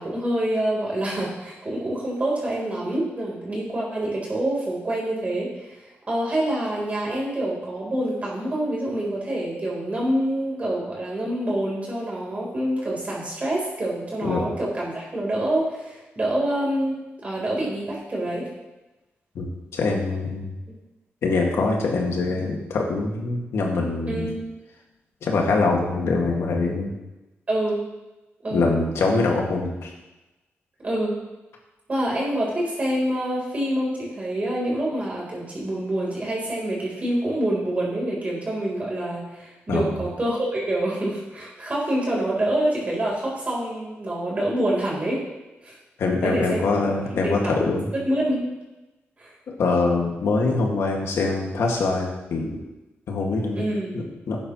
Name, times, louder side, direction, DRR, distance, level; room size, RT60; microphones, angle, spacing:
voice 1, 0.0-18.5 24.1-24.4 27.5-27.8 28.4-28.7 30.8-31.2 31.9-45.2 45.6-45.8 46.2-46.6 47.1-48.4 49.2-49.3 53.6-54.0, right 1 dB, 30° right, -4 dB, 3.9 m, -26 dB
voice 2, 19.4-20.5 21.2-24.3 25.2-26.9 28.5-29.9 39.7-40.0 46.0-47.9 49.5-52.6 53.1-53.6 53.9-54.4, left 3 dB, 80° left, 0 dB, 2.0 m, -24 dB
12.0 x 9.7 x 3.1 m, 1.0 s
wide cardioid pair, 120°, 5 cm